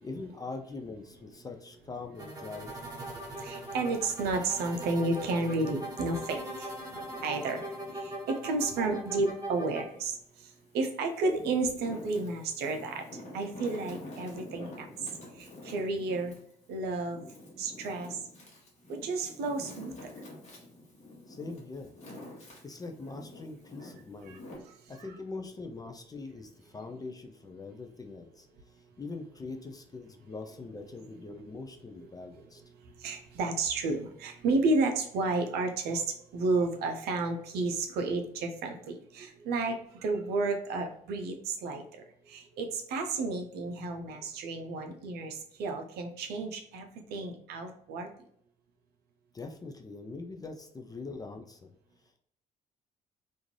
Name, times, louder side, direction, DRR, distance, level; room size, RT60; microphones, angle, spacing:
voice 1, 0.0-2.7 21.3-21.9 22.6-24.4 24.9-28.5 29.0-32.6 49.3-51.7, left 3 dB, 20° left, 5 dB, 0.5 m, -42 dB
sound 1, 2.2-9.8, right 1 dB, 20° right, 1.4 m, -40 dB
voice 2, 3.4-6.7 7.2-14.9 15.4-16.3 16.7-17.2 17.6-18.2 18.9-19.9 24.2-24.4 24.7-24.8 33.0-48.1, right 3 dB, 55° right, 4 dB, 0.6 m, -32 dB
Wind, 5.3-8.2 8.7-10.0 10.6-24.6, left 1 dB, 35° left, 1.2 m, -49 dB
3.5 x 2.6 x 3.1 m, 0.69 s
figure-of-eight pair, 50°, 20 cm